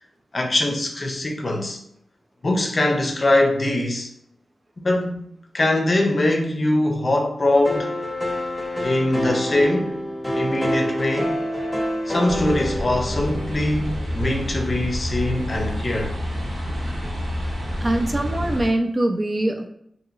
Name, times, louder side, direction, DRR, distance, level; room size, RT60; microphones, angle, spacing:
voice 1, 0.3-1.8 2.4-4.1 4.8-5.2 5.5-8.0 8.8-10.0 10.3-11.4 12.1-16.2, left 1 dB, 45° left, 0.6 m, -22 dB
sound 1, 7.6-13.5, equal, 15° left, 0.9 m, -27 dB
sound 2, 12.3-18.7, equal, 65° right, 1.2 m, -28 dB
voice 2, 17.8-19.7, right 1 dB, 35° right, 0.5 m, -23 dB
2.9 x 2.8 x 2.4 m
cardioid pair, 55°, 0 cm